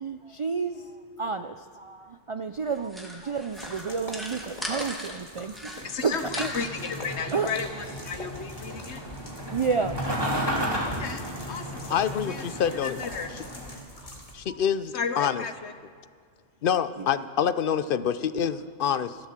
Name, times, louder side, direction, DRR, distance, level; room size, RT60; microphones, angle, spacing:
voice 1, 0.0-6.5 7.3-7.5 9.5-10.0 14.5-14.6 17.0-17.1, right 5 dB, 55° right, 8 dB, 0.3 m, -31 dB
sound 1, 2.6-5.2 5.5-6.9, equal, ahead, 2.1 m, -39 dB
sound 2, 3.5-14.3, left 1 dB, 35° left, 2.0 m, -45 dB
voice 2, 5.8-9.0 10.8-12.4 12.8-13.3 14.9-15.7, left 6 dB, 75° left, 9 dB, 1.3 m, -34 dB
sound 3, 6.2-13.8, equal, 20° right, 2.9 m, -34 dB
voice 3, 11.9-13.0 14.3-15.4 16.6-19.2, left 8 dB, 60° left, 14 dB, 0.7 m, -26 dB
14.0 x 13.0 x 7.5 m, 2.1 s
omnidirectional pair, 1.1 m